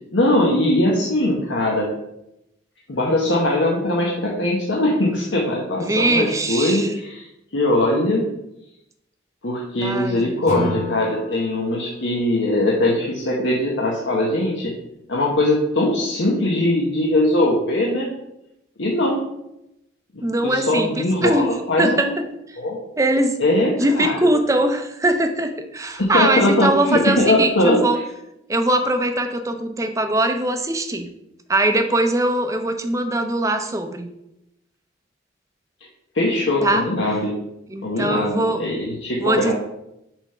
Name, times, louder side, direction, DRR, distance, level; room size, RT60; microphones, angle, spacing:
voice 1, 0.1-1.9 2.9-7.3 7.5-8.2 9.4-14.7 15.1-18.1 18.8-19.2 20.1-22.2 22.6-22.8 23.4-24.3 26.0-27.8 36.1-37.3 37.8-39.5, left 1 dB, 85° left, -2 dB, 1.0 m, -21 dB
voice 2, 5.7-7.0 9.8-10.3 20.2-21.5 21.8-22.1 22.5-22.6 23.0-23.4 23.8-28.0 28.5-31.1 31.5-34.1 36.6-36.8 37.7-38.7 39.2-39.5, right 1 dB, 15° right, 6 dB, 0.6 m, -21 dB
Acoustic guitar / Strum, 10.5-13.6, left 1 dB, 40° left, 1.7 m, -32 dB
5.9 x 3.5 x 5.6 m, 0.85 s
head